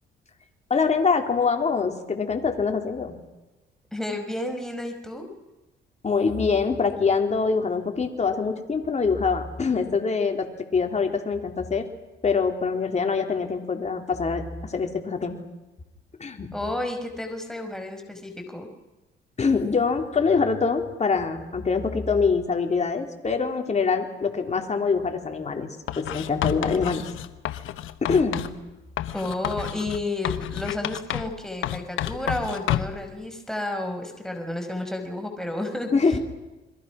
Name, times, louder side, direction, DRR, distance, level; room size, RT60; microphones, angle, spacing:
voice 1, 0.7-3.2 6.0-11.9 12.2-15.4 16.2-16.5 19.4-27.1 28.0-28.5 35.9-36.2, left 5 dB, 35° left, 4 dB, 3.7 m, -24 dB
voice 2, 3.9-5.3 16.5-18.7 29.1-35.9, left 1 dB, ahead, 4 dB, 5.2 m, -31 dB
Writing, 25.9-28.6 29.0-31.4 31.6-33.0, left 12 dB, 85° left, 1.2 m, -30 dB
30.0 x 23.0 x 6.1 m, 1.1 s
cardioid pair, 90°, 20 cm